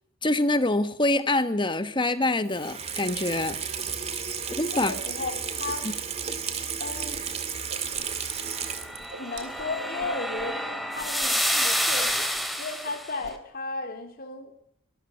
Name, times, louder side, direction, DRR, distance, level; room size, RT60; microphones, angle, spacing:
voice 1, 0.2-3.6 4.6-4.9 5.8-5.9, left 2 dB, 25° left, 11 dB, 1.3 m, -25 dB
Water tap faucet / Sink (filling or washing), 2.5-9.2 9.5-9.6, right 6 dB, 30° right, 2.2 m, -33 dB
voice 2, 4.7-5.9 6.8-7.2 9.2-12.3 12.6-14.5, left 3 dB, 45° left, 4 dB, 3.2 m, -34 dB
Whoosh swoosh swish, 7.1-7.2 7.5-8.4 8.7-10.6 11.0-11.3 11.5-11.7 12.0-12.6 12.8-13.4, right 3 dB, 60° right, 3.4 m, -47 dB
sound 1, 8.5-13.1, equal, ahead, 2.4 m, -29 dB
25.0 x 13.5 x 7.8 m, 0.72 s
head